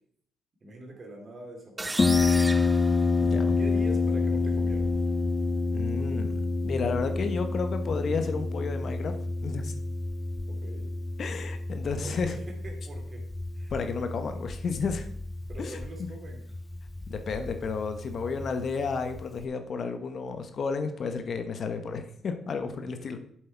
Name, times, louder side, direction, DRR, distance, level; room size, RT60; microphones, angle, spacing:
voice 1, 0.6-2.8 3.6-4.9 10.5-10.9 11.9-13.2 13.5-14.1 15.5-16.5 23.0-23.1, right 1 dB, 40° right, 3 dB, 2.6 m, -44 dB
sound 1, 1.8-3.7, right 2 dB, 15° right, 0.5 m, -35 dB
Harp, 2.0-19.4, left 3 dB, 25° left, 0.7 m, -29 dB
voice 2, 3.2-3.6 5.7-9.2 9.4-9.7 11.2-12.3 13.7-15.1 15.6-15.8 17.1-23.2, left 5 dB, 50° left, 7 dB, 1.1 m, -32 dB
7.7 x 7.7 x 4.6 m, 0.65 s
cardioid pair, 90°, 0 cm